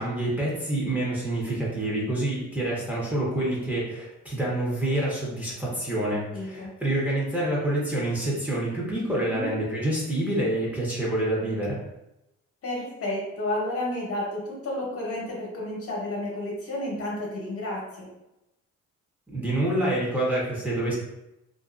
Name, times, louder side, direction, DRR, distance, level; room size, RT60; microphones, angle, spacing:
voice 1, 0.0-11.8 19.3-21.0, right 1 dB, 5° right, -6 dB, 0.8 m, -27 dB
voice 2, 6.3-6.7 9.2-9.5 12.6-18.1, left 1 dB, 50° left, -4 dB, 0.9 m, -31 dB
2.5 x 2.4 x 2.4 m, 0.91 s
cardioid pair, 90°, 30 cm